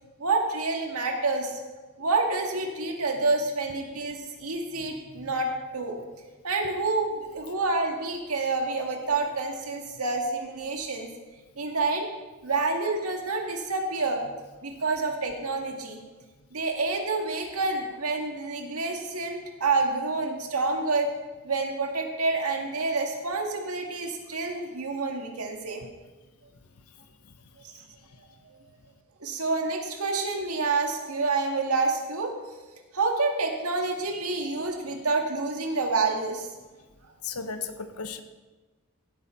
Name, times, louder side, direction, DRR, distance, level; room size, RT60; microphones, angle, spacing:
voice 1, 0.2-1.6 2.0-6.0 6.4-11.1 11.6-12.1 12.4-14.3 14.6-16.0 16.5-21.1 21.4-25.8 28.5-28.6 29.2-32.3 32.9-36.5, right 3 dB, 85° right, 3 dB, 1.8 m, -28 dB
voice 2, 37.2-38.2, left 5 dB, 90° left, 9 dB, 1.0 m, -34 dB
16.0 x 8.6 x 4.4 m, 1.2 s
head